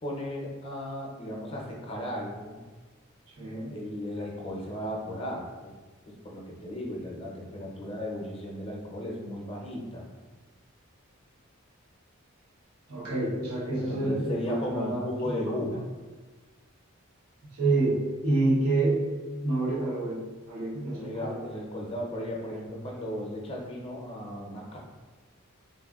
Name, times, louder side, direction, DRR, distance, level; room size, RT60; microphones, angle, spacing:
voice 1, 0.0-2.6 3.4-5.7 6.2-10.1 13.7-15.8 20.9-24.8, left 1 dB, 25° left, -1 dB, 0.6 m, -35 dB
voice 2, 3.4-3.7 12.9-15.8 17.5-20.2 20.5-21.4, right 2 dB, 90° right, -6 dB, 1.0 m, -28 dB
3.4 x 2.6 x 2.3 m, 1.3 s
head